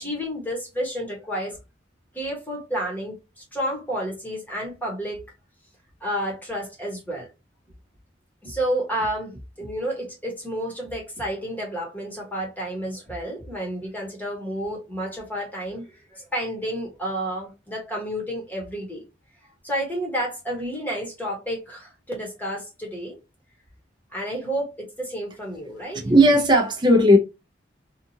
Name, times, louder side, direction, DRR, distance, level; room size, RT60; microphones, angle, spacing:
voice 1, 0.0-1.6 2.1-5.2 6.0-7.3 8.4-9.3 9.6-19.0 19.6-23.2 24.1-26.1, equal, 10° left, 1.1 m, -30 dB
voice 2, 25.9-27.2, equal, 25° right, 0.6 m, -16 dB
2.8 x 2.4 x 2.7 m
head